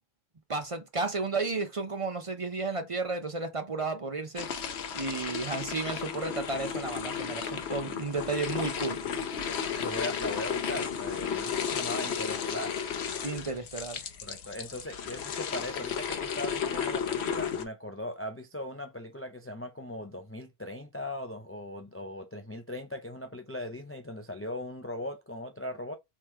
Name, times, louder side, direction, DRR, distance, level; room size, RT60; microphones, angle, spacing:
voice 1, 0.5-4.5 4.9-9.0 13.2-14.0, right 3 dB, 35° right, 0.6 m, -33 dB
sound 1, 4.4-17.6, left 7 dB, 75° left, 1.0 m, -33 dB
voice 2, 9.8-12.8 14.2-26.0, left 1 dB, 25° left, 0.3 m, -39 dB
3.6 x 3.2 x 4.3 m
omnidirectional pair, 1.1 m